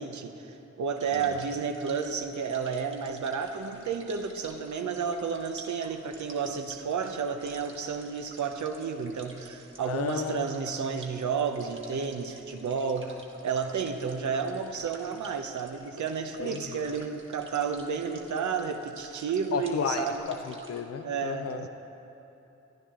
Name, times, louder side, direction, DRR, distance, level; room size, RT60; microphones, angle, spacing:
voice 1, 0.0-20.3 21.0-21.7, right 6 dB, 75° right, 6 dB, 0.8 m, -31 dB
sound 1, 0.9-20.8, right 2 dB, 40° right, 1.7 m, -52 dB
voice 2, 9.8-10.4 16.4-16.8 19.5-21.7, left 7 dB, 55° left, 8 dB, 0.6 m, -33 dB
14.0 x 10.0 x 3.7 m, 3.0 s
cardioid pair, 40°, 29 cm